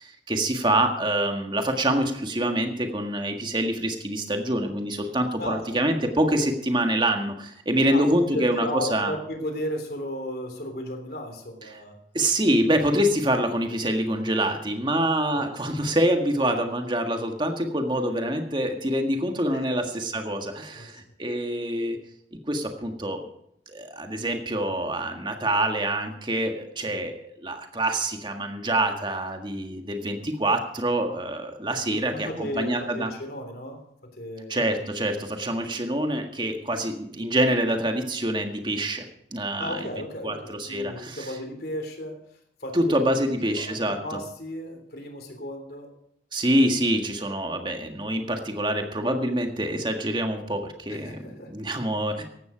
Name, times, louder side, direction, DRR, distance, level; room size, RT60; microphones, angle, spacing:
voice 1, 0.0-9.1 11.7-11.8 12.1-22.0 22.5-23.2 23.7-33.1 34.5-39.0 39.3-41.3 42.7-44.2 46.3-52.3, right 1 dB, 25° right, 4 dB, 1.7 m, -26 dB
voice 2, 5.4-5.9 7.9-12.0 15.3-15.5 19.5-20.1 20.8-20.9 26.9-27.0 31.8-34.7 39.6-42.2 42.6-43.3 43.6-45.9 50.9-51.5, equal, 60° left, 5 dB, 3.2 m, -35 dB
15.5 x 11.5 x 5.1 m, 0.73 s
head